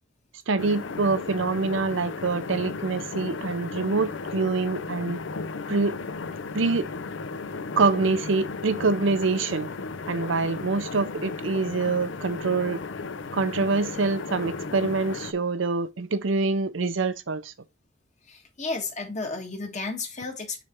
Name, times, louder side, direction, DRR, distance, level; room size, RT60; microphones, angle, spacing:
voice 1, 0.5-5.2 5.7-5.9 6.5-6.9 7.8-9.7 10.1-12.8 13.3-17.5, right 3 dB, 70° right, 0.7 m, -25 dB
sound 1, 0.6-15.3, left 4 dB, 65° left, 0.5 m, -35 dB
voice 2, 18.2-20.6, left 3 dB, 35° left, 1.5 m, -33 dB
6.8 x 3.3 x 4.4 m
head